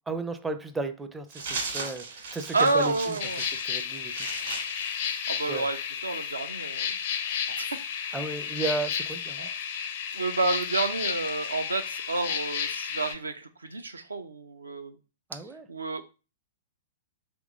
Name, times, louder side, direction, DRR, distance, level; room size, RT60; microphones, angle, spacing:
voice 1, 0.1-2.1 2.3-3.2 3.6-4.3 5.5-5.7 8.1-9.5 15.3-15.7, right 3 dB, 10° right, 0.4 m, -34 dB
sound 1, 1.3-5.7, right 4 dB, 60° right, 1.7 m, -37 dB
voice 2, 2.5-3.4 5.0-7.8 9.4-9.5 10.1-15.0 15.3-15.4 15.7-16.0, right 3 dB, 75° right, 0.5 m, -30 dB
sound 2, 3.2-13.1, left 7 dB, 50° left, 0.5 m, -32 dB
3.7 x 3.0 x 3.6 m
figure-of-eight pair, 105°, 0 cm